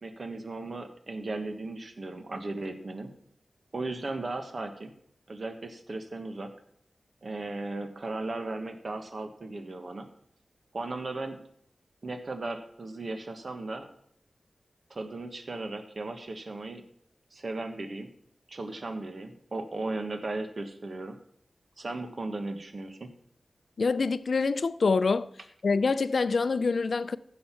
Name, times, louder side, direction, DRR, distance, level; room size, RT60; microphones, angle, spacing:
voice 1, 0.0-3.1 3.7-4.9 5.3-6.5 7.2-10.1 10.7-11.4 12.0-13.9 14.9-16.8 17.3-18.1 18.5-21.2 21.8-23.1, right 2 dB, 50° right, 1.4 m, -36 dB
voice 2, 23.8-25.3 25.6-27.2, left 4 dB, 65° left, 0.5 m, -25 dB
15.0 x 6.6 x 5.8 m
wide cardioid pair, 90°, 0 cm